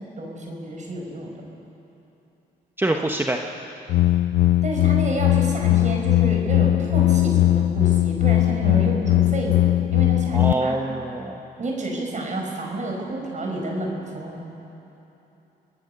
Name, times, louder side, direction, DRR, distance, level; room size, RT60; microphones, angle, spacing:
voice 1, 0.2-1.3 4.6-9.5 9.9-10.7 11.6-14.4, right 2 dB, 45° right, 0 dB, 5.4 m, -30 dB
voice 2, 2.8-3.4 10.3-11.4, right 2 dB, 10° right, 2 dB, 1.2 m, -25 dB
sound 1, 3.9-10.5, left 15 dB, 85° left, 0.4 m, -19 dB
25.0 x 18.5 x 6.8 m, 3.0 s
cardioid pair, 80°, 18 cm